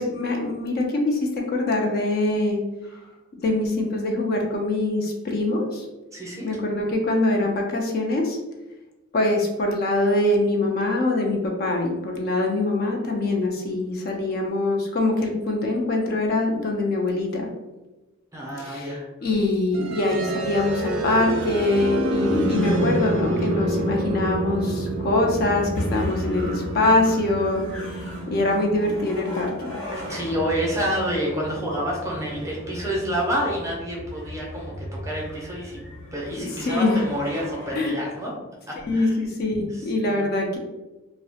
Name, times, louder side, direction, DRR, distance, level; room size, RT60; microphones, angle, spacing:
voice 1, 0.0-2.6 3.4-5.8 6.4-8.4 9.1-17.5 18.6-18.9 19.2-27.6 28.3-29.7 36.4-37.0 37.7-38.0 38.8-40.6, left 2 dB, 45° left, 1 dB, 0.3 m, -23 dB
voice 2, 6.1-6.5 18.3-19.1 29.9-35.8 36.1-38.3 38.7-39.2 39.7-40.2, equal, 15° right, -3 dB, 0.5 m, -29 dB
sound 1, 19.7-31.6, right 2 dB, 70° right, 0.4 m, -29 dB
sound 2, 20.4-37.8, equal, 70° left, 0.9 m, -36 dB
2.3 x 2.0 x 2.7 m, 1.1 s
head